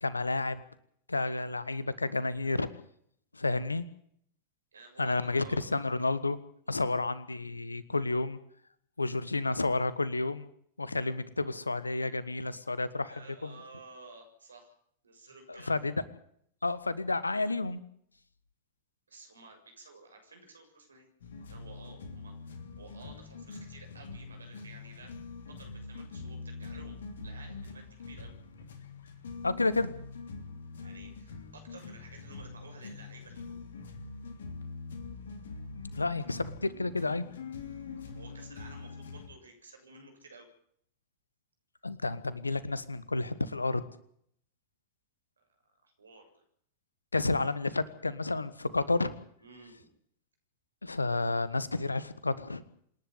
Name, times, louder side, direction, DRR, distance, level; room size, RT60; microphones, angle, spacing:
voice 1, 0.0-0.6 1.1-2.7 3.3-3.8 5.0-6.4 6.7-8.4 9.0-10.5 10.8-13.1 13.4-13.5 15.5-15.9 16.6-17.8 29.4-29.9 36.0-37.2 41.8-43.8 47.1-49.1 50.8-52.6, left 3 dB, 80° left, 17 dB, 1.4 m, -30 dB
voice 2, 4.7-5.6 6.6-7.0 13.0-14.8 15.0-15.9 19.1-21.1 21.5-25.1 25.5-28.3 30.8-33.6 36.2-36.3 38.0-40.5 45.4-46.4 49.4-49.9, right 3 dB, 75° right, 4 dB, 7.1 m, -53 dB
sound 1, 21.2-39.3, left 4 dB, 65° left, 3.0 m, -44 dB
27.0 x 11.0 x 9.9 m, 0.66 s
figure-of-eight pair, 90°, 0 cm